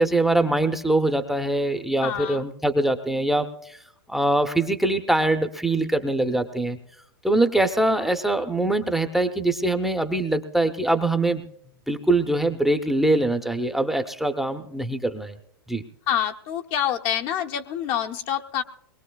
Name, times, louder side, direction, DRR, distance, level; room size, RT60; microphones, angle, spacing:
voice 1, 0.0-3.8 4.1-6.8 7.2-11.4 11.9-15.3 15.7-15.8, right 2 dB, ahead, 6 dB, 0.6 m, -23 dB
voice 2, 2.0-2.5 16.1-18.6, left 10 dB, 40° left, 5 dB, 0.7 m, -27 dB
22.5 x 21.0 x 2.3 m, 0.72 s
hypercardioid pair, 130°, 13 cm